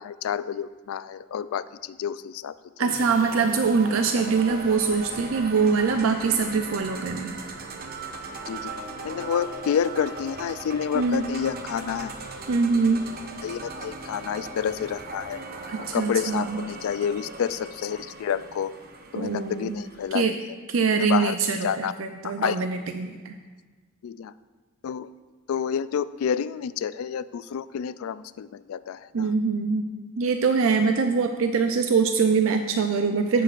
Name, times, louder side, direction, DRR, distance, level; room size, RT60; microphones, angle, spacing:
voice 1, 0.0-3.1 8.5-8.7 9.0-12.1 13.4-15.4 15.8-18.8 19.1-20.4 21.0-21.9 22.2-22.6 24.0-24.3 24.8-25.1 25.5-29.3, left 8 dB, 85° left, 16 dB, 0.3 m, -29 dB
voice 2, 2.8-7.4 10.9-11.2 12.5-13.1 15.7-16.6 19.2-19.8 20.1-20.3 20.7-23.4 29.1-29.9 30.2-33.4, right 5 dB, 70° right, 6 dB, 0.5 m, -23 dB
sound 1, 2.9-20.1, right 3 dB, 45° right, 0.8 m, -38 dB
16.0 x 6.8 x 2.5 m, 1.3 s
head